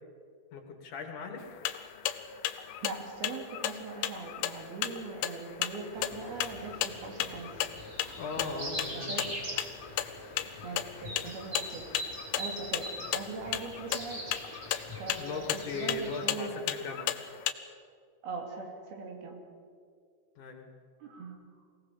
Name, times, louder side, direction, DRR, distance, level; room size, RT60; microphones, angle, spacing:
voice 1, 0.5-1.4 8.2-9.3 15.2-17.2 20.4-20.7, left 4 dB, 60° left, 4 dB, 3.0 m, -38 dB
sound 1, 1.4-17.5, left 12 dB, 75° left, 2.5 m, -35 dB
voice 2, 2.8-7.5 8.0-9.3 10.6-11.9 12.3-14.3 15.0-16.6 18.2-19.4 21.0-21.4, right 4 dB, 75° right, 2 dB, 4.5 m, -41 dB
sound 2, 5.9-16.2, equal, 25° right, 4.9 m, -42 dB
23.5 x 17.5 x 7.3 m, 2.2 s
omnidirectional pair, 4.5 m